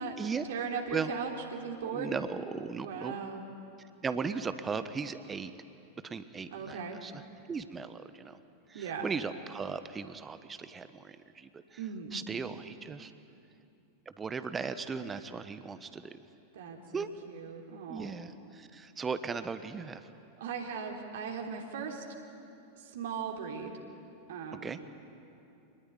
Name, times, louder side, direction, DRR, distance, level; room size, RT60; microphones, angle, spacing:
voice 1, 0.5-2.1 2.8-3.5 6.5-7.0 8.7-9.1 11.8-12.1 16.5-18.2 20.4-22.0 22.7-23.7 24.3-24.9, right 6 dB, 60° right, 1 dB, 3.3 m, -38 dB
voice 2, 1.9-3.2 4.0-5.5 6.0-7.2 7.5-8.4 8.7-11.8 12.1-13.1 14.2-16.2 16.9-17.1 17.9-20.1 24.6-24.8, right 5 dB, 15° right, 11 dB, 1.1 m, -37 dB
27.0 x 20.5 x 9.8 m, 2.7 s
figure-of-eight pair, 90°, 0 cm